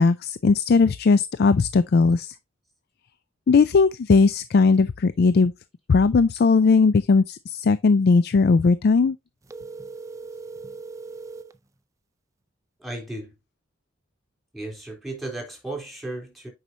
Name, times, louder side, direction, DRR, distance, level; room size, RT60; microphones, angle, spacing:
voice 1, 0.0-2.3 3.5-5.5 5.9-9.2, left 4 dB, 50° left, 0.4 m, -18 dB
sound 1, 9.5-11.6, right 3 dB, 15° right, 0.4 m, -39 dB
voice 2, 12.8-13.4 14.5-16.5, right 2 dB, ahead, 3.7 m, -35 dB
9.1 x 5.6 x 2.8 m
head